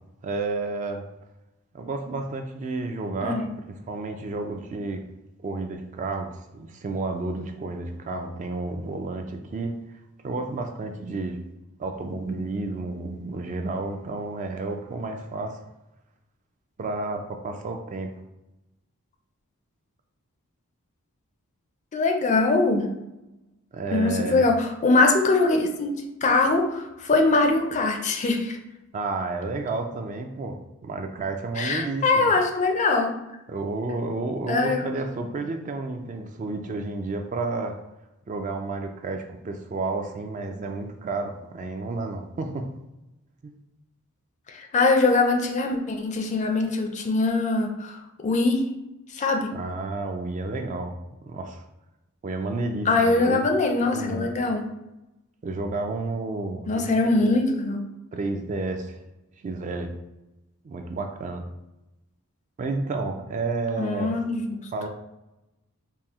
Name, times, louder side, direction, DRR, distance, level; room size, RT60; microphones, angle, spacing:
voice 1, 0.2-1.0 1.7-5.0 5.4-6.3 6.5-9.7 10.2-11.4 11.8-15.6 16.8-18.1 23.7-24.4 28.9-30.6 30.8-32.3 33.5-37.7 38.3-42.7 43.4-43.5 49.5-51.0 51.2-51.6 52.2-53.5 53.8-54.3 55.4-56.9 57.2-57.4 58.1-59.0 59.4-59.9 60.6-61.5 62.6-64.1 64.7-64.9, right 3 dB, 35° right, 5 dB, 0.3 m, -31 dB
voice 2, 21.9-22.9 23.9-28.6 31.6-33.1 34.5-34.8 44.5-48.0 48.2-48.6 49.1-49.5 52.9-54.7 56.7-57.8 63.8-64.6, left 3 dB, 35° left, 3 dB, 0.4 m, -22 dB
4.2 x 2.0 x 3.5 m, 0.96 s
head